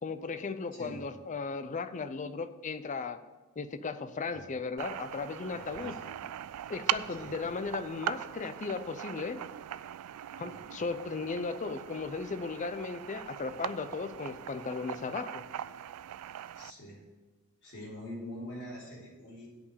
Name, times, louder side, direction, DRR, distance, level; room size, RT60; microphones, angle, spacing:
voice 1, 0.0-3.2 3.6-6.0 6.7-9.4 10.4-15.4, left 4 dB, 35° left, 11 dB, 0.5 m, -36 dB
voice 2, 0.7-1.1 4.3-4.4 5.6-6.1 7.2-7.4 10.5-10.7 16.5-17.0 17.6-19.5, left 1 dB, 55° left, -7 dB, 3.6 m, -44 dB
sound 1, 4.8-16.7, right 11 dB, 80° right, 0.3 m, -40 dB
8.9 x 5.7 x 6.9 m, 1.3 s
head